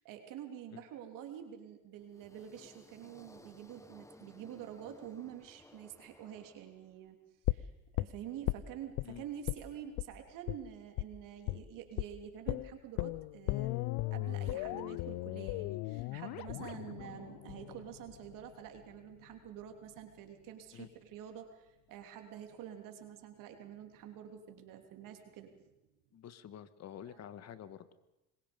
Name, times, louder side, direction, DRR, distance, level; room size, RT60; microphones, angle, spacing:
voice 1, 0.0-7.2 7.5-7.7 8.0-25.7 27.0-27.2, right 10 dB, 70° right, 5 dB, 3.3 m, -48 dB
sound 1, 2.0-7.1, left 2 dB, 10° left, 1.5 m, -59 dB
sound 2, 7.4-9.1 9.5-9.7 10.0-10.1 10.5-10.6 11.0-11.1 11.5-11.7 12.0-12.1 12.5-18.5 18.8-18.9, left 19 dB, 75° left, 0.7 m, -37 dB
voice 2, 26.1-27.9, left 9 dB, 50° left, 12 dB, 1.9 m, -48 dB
26.5 x 22.0 x 5.4 m, 0.93 s
supercardioid pair, 100°, 34 cm